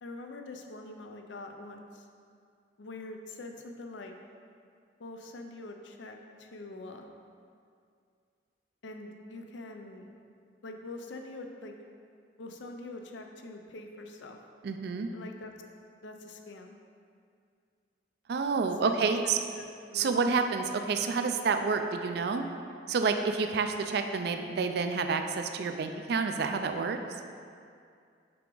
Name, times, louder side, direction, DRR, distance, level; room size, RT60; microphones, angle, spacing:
voice 1, 0.0-2.1 2.8-4.1 5.0-7.1 8.8-10.2 10.6-11.7 12.4-14.4 15.1-15.5 16.0-16.8 18.7-18.9 19.2-20.3, left 2 dB, 80° left, 4 dB, 0.5 m, -44 dB
voice 2, 14.6-15.1 18.3-19.4 19.9-22.4 22.9-27.0, right 4 dB, 60° right, 6 dB, 0.4 m, -29 dB
5.8 x 4.8 x 3.8 m, 2.3 s
head